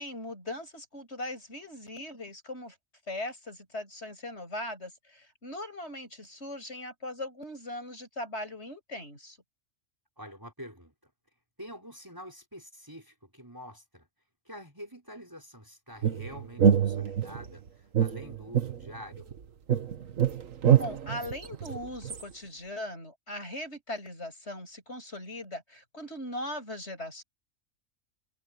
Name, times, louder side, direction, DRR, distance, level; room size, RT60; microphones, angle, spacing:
voice 1, 0.0-2.7 3.1-9.4 20.6-27.2, left 1 dB, 55° left, 8.5 m, -39 dB
voice 2, 10.2-11.1 11.6-14.1 14.5-19.3, equal, 15° right, 5.4 m, -46 dB
sound 1, 16.0-17.5 17.9-19.4 19.7-22.2, right 8 dB, 80° right, 1.7 m, -25 dB
omnidirectional pair, 1.4 m